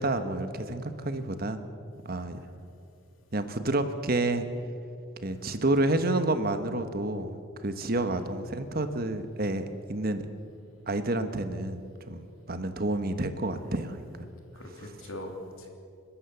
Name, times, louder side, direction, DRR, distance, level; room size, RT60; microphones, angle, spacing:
voice 1, 0.0-1.6 2.0-2.4 3.3-4.5 5.2-7.4 7.6-9.6 9.9-10.2 10.9-11.8 12.1-14.0, right 2 dB, 45° right, 9 dB, 1.3 m, -29 dB
voice 2, 2.1-2.6 5.3-5.6 8.0-8.3 13.6-14.1 14.5-15.7, left 1 dB, 75° left, 2 dB, 3.4 m, -44 dB
30.0 x 13.0 x 7.0 m, 2.5 s
head